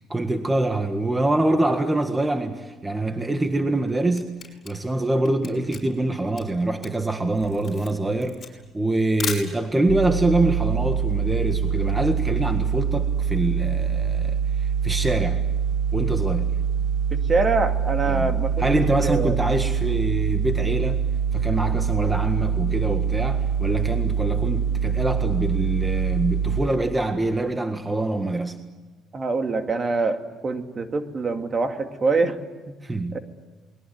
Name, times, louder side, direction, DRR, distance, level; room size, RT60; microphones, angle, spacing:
voice 1, 0.1-15.4 15.9-16.5 18.1-18.3 18.6-21.0 21.3-28.6 32.8-33.2, right 2 dB, 15° right, 1.7 m, -25 dB
Camera, 4.2-10.0, left 6 dB, 40° left, 6.7 m, -37 dB
sound 1, 9.9-26.6, right 7 dB, 85° right, 4.7 m, -24 dB
voice 2, 17.1-18.7 19.0-19.4 29.1-32.4 32.7-32.8 33.1-33.2, right 3 dB, 35° right, 2.3 m, -24 dB
28.0 x 21.5 x 9.5 m
cardioid pair, 95°, 0 cm